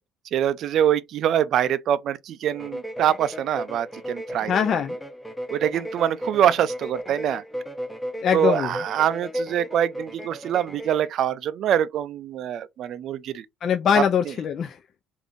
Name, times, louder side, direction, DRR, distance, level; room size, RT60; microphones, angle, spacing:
voice 1, 0.3-4.5 5.5-7.4 8.3-13.5 13.9-14.0, right 10 dB, 60° right, 0.3 m, -24 dB
sound 1, 2.5-11.1, equal, 5° left, 0.6 m, -35 dB
voice 2, 4.5-5.0 8.2-8.7 13.6-14.8, left 7 dB, 50° left, 0.3 m, -22 dB
3.4 x 2.6 x 2.5 m
cardioid pair, 95°, 0 cm